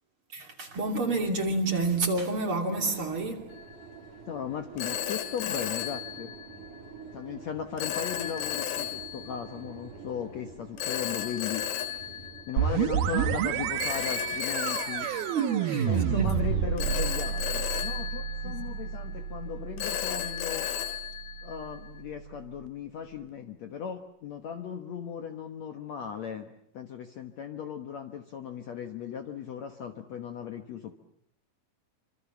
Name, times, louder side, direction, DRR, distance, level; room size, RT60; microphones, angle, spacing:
voice 1, 0.3-3.5 15.0-16.4 18.4-18.6, right 3 dB, 35° right, 3.1 m, -30 dB
sound 1, 2.7-12.5, right 6 dB, 55° right, 4.6 m, -47 dB
Telephone, 3.5-3.8 4.8-6.8 7.8-9.5 10.8-13.0 13.8-16.1 16.8-19.1 19.8-22.0, left 10 dB, 75° left, 3.6 m, -34 dB
voice 2, 4.3-6.3 7.1-12.2 12.5-15.1 15.9-20.7 21.4-30.9, left 8 dB, 60° left, 2.0 m, -37 dB
sound 2, 12.6-22.1, right 9 dB, 75° right, 3.0 m, -30 dB
27.0 x 26.0 x 7.2 m
omnidirectional pair, 4.4 m